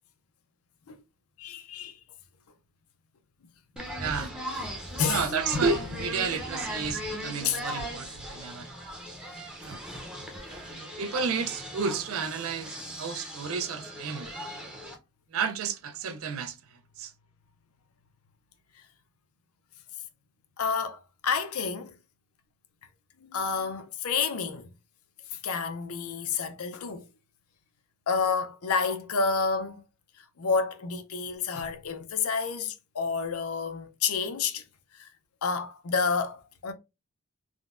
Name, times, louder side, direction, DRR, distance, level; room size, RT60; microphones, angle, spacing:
voice 1, 1.4-1.9 3.7-3.8 5.0-5.2 5.5-5.6 6.8-7.0 7.4-7.6 20.6-22.0 23.2-24.7 25.3-27.1 28.1-29.8 30.4-34.6 34.9-35.1 35.4-36.7, left 5 dB, 85° left, 0.5 m, -29 dB
sound 1, 3.8-14.9, equal, 5° right, 0.6 m, -38 dB
voice 2, 4.0-4.4 5.1-8.7 9.6-9.8 10.6-14.3 15.3-16.6 17.0-17.1, right 5 dB, 70° right, 0.5 m, -31 dB
3.6 x 2.1 x 2.4 m
head